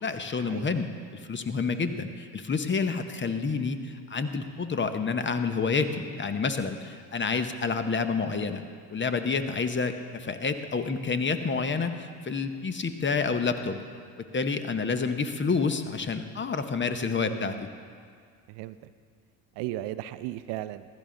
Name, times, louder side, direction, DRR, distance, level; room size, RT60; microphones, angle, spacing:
voice 1, 0.0-8.6 8.9-13.8 14.3-17.7, left 4 dB, 25° left, 9 dB, 0.9 m, -29 dB
voice 2, 17.2-17.6 18.5-18.9 19.6-20.9, right 14 dB, 55° right, 14 dB, 0.6 m, -36 dB
15.0 x 11.5 x 3.8 m, 2.1 s
hypercardioid pair, 70°, 50 cm